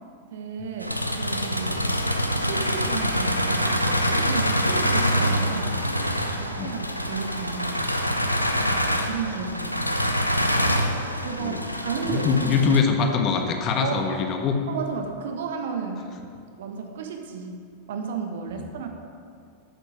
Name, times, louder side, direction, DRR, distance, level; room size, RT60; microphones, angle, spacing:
voice 1, 0.3-1.8 2.4-5.8 6.4-7.8 8.6-8.8 9.1-10.0 11.2-12.3 12.6-12.7 13.8-14.1 14.7-16.3 16.6-18.9, right 5 dB, 60° right, 4 dB, 1.3 m, -33 dB
sound 1, 0.8-12.8, equal, 90° left, 0.7 m, -25 dB
voice 2, 12.1-14.6 18.6-18.7, left 5 dB, 35° left, 4 dB, 1.4 m, -23 dB
12.5 x 9.1 x 5.0 m, 2.4 s
figure-of-eight pair, 90°, 0 cm